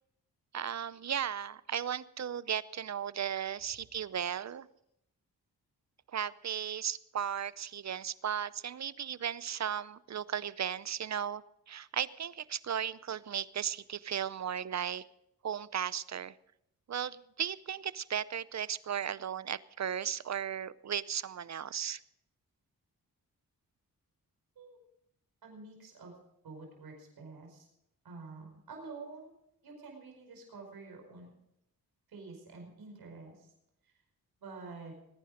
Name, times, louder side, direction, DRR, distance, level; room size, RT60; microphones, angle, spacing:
voice 1, 0.5-4.7 6.1-15.0 15.4-16.3 16.9-22.0, right 9 dB, 50° right, 18 dB, 0.7 m, -36 dB
voice 2, 25.4-26.1 26.4-27.7 28.0-29.3 29.6-31.3 32.1-33.5 34.4-34.9, right 3 dB, 80° right, 2 dB, 5.1 m, -48 dB
21.0 x 10.0 x 5.1 m, 0.78 s
cardioid pair, 55°, 37 cm